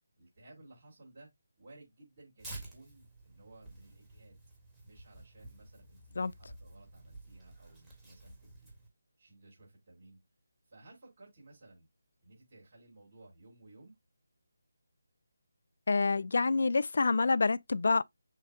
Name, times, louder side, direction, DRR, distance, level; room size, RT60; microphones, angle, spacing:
voice 1, 0.2-1.3 1.6-4.4 4.8-8.7 9.2-10.2 10.7-11.9 12.2-14.0, right 2 dB, 35° right, 3.7 m, -57 dB
Tearing, 2.4-8.9, right 2 dB, 5° right, 1.6 m, -51 dB
voice 2, 15.9-18.0, left 4 dB, 55° left, 0.3 m, -27 dB
6.4 x 2.3 x 3.6 m
figure-of-eight pair, 155°, 0 cm